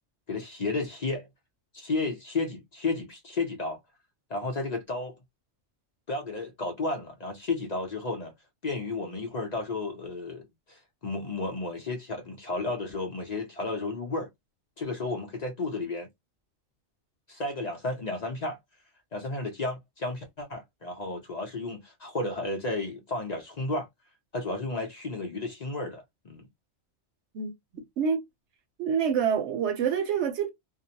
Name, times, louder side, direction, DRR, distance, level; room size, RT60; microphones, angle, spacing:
voice 1, 0.3-1.3 1.7-3.8 4.3-5.2 6.1-8.3 8.6-14.3 14.8-16.1 17.3-18.6 19.1-23.9 24.3-26.5, left 2 dB, 45° left, 0.6 m, -32 dB
voice 2, 27.3-28.2 28.8-30.5, right 7 dB, 75° right, 1.0 m, -27 dB
2.4 x 2.0 x 2.7 m
omnidirectional pair, 1.2 m